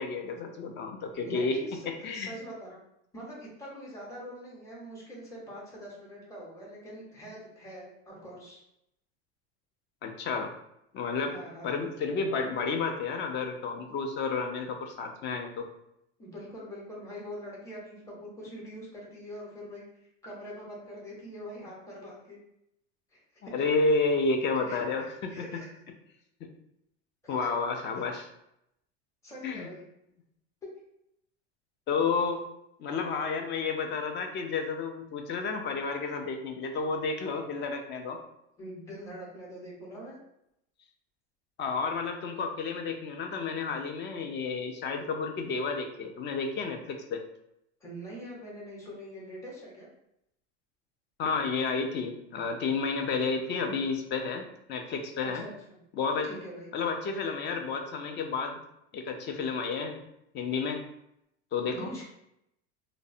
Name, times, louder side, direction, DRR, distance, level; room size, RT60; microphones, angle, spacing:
voice 1, 0.0-1.6 1.9-2.4 10.0-10.5 10.9-11.4 11.6-15.7 23.5-25.5 27.3-28.3 29.4-29.7 31.9-32.4 32.8-38.2 41.6-47.2 51.2-55.4 55.9-56.3 56.7-58.6 58.9-60.0 60.3-60.8 61.5-61.9, left 4 dB, 35° left, 5 dB, 0.4 m, -31 dB
voice 2, 1.1-1.8 2.1-2.8 3.1-8.6 11.3-11.7 16.2-19.8 20.2-22.4 23.1-23.2 24.7-25.7 27.2-27.5 29.2-29.8 38.6-40.2 46.8-46.9 47.8-49.9 55.3-55.8 56.2-56.7 61.7-62.0, equal, 10° left, -5 dB, 0.8 m, -43 dB
2.5 x 2.0 x 2.5 m, 0.80 s
supercardioid pair, 105°, 35 cm